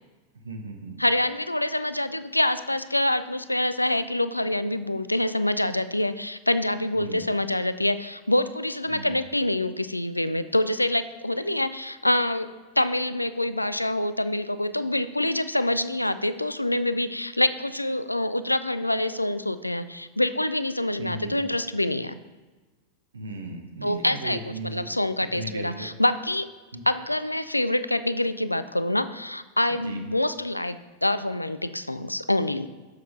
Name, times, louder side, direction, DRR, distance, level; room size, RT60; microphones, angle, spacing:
voice 1, 0.4-1.0 6.9-7.3 8.9-9.2 21.0-21.4 23.1-24.8 25.3-25.9 26.7-26.8 29.7-30.0, right 2 dB, 70° right, 3 dB, 0.9 m, -36 dB
voice 2, 1.0-12.5 12.8-22.2 23.8-26.5 26.9-32.7, left 1 dB, 85° left, 13 dB, 0.3 m, -26 dB
7.1 x 6.4 x 4.0 m, 1.3 s
figure-of-eight pair, 90°, 0 cm